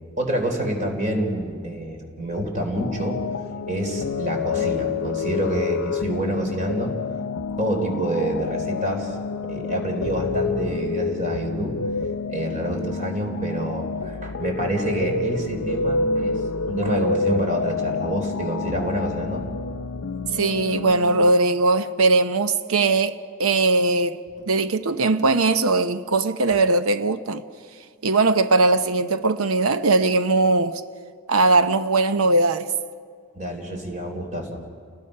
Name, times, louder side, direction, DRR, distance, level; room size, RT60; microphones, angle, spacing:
voice 1, 0.2-3.2 3.7-6.9 7.6-9.2 9.4-11.7 12.3-16.4 16.7-19.4 24.4-24.5 33.3-34.6, right 1 dB, 35° right, 3.8 m, -27 dB
sound 1, 2.7-21.3, left 4 dB, 80° left, 0.5 m, -28 dB
voice 2, 20.3-23.1 23.4-24.2 24.5-27.4 28.0-30.8 31.3-32.7, right 3 dB, 80° right, 0.8 m, -20 dB
30.0 x 19.0 x 5.6 m
head